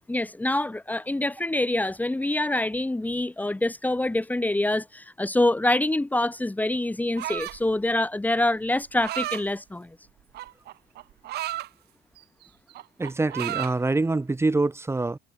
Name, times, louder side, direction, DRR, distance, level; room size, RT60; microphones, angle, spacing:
voice 1, 0.1-10.0, left 1 dB, 10° left, 2.2 m, -25 dB
sound 1, 7.2-7.7 8.7-9.4 10.3-11.7 12.2-12.4 12.7-13.8, right 15 dB, 75° right, 2.1 m, -33 dB
voice 2, 13.0-15.2, right 3 dB, 15° right, 2.8 m, -25 dB
cardioid pair, 110°, 17 cm